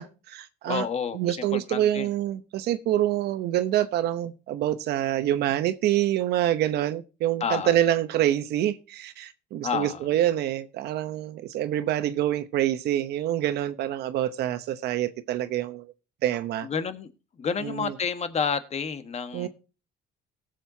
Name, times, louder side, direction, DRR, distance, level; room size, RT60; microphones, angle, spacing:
voice 1, 0.0-0.9 1.1-15.9 16.2-16.7 17.6-17.9 19.3-19.5, right 12 dB, 75° right, 0.9 m, -26 dB
voice 2, 0.6-1.2 1.5-2.1 7.4-7.7 9.6-10.0 16.6-17.1 17.4-19.5, left 6 dB, 40° left, 1.5 m, -29 dB
18.0 x 7.7 x 2.8 m
cardioid pair, 110°, 17 cm